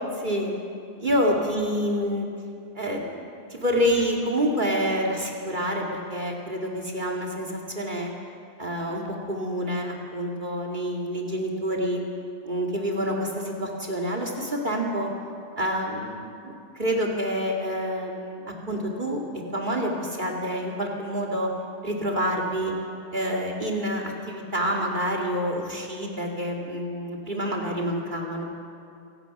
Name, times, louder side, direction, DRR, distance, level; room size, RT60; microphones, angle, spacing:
voice 1, 0.2-0.5 1.0-2.3 2.7-3.2 3.5-8.1 8.6-12.0 12.4-15.1 15.5-19.2 19.5-21.5 21.8-22.7 23.1-28.4, equal, 25° right, -1 dB, 1.1 m, -27 dB
27.5 x 18.5 x 6.0 m, 2.5 s
omnidirectional pair, 4.8 m